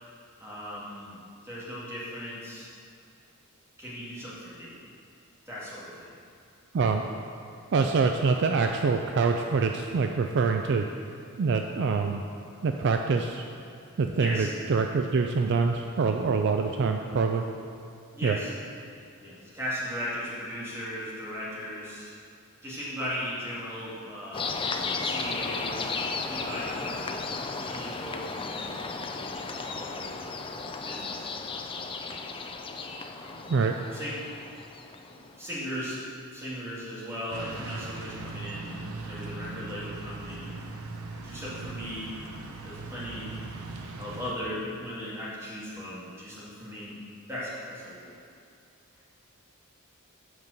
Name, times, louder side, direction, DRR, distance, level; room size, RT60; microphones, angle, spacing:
voice 1, 0.4-1.2 1.4-2.7 3.8-4.7 5.5-6.1 14.1-14.5 18.1-18.5 19.2-22.1 22.6-26.0 26.3-27.1 27.4-30.1 30.8-31.3 33.2-33.5 33.9-34.2 35.0-36.0 36.3-40.6 41.2-42.1 42.6-43.3 44.0-47.0 47.3-48.2, equal, 10° right, -8 dB, 2.2 m, -37 dB
voice 2, 7.7-10.9 11.4-12.2 12.6-13.4 14.0-17.4 18.2-18.4 33.5-33.7, right 4 dB, 55° right, 5 dB, 0.4 m, -25 dB
sound 1, 24.3-35.3, left 4 dB, 25° left, 0.4 m, -34 dB
sound 2, 37.3-44.3, right 3 dB, 70° right, 0.7 m, -39 dB
8.1 x 5.3 x 6.5 m, 2.4 s
head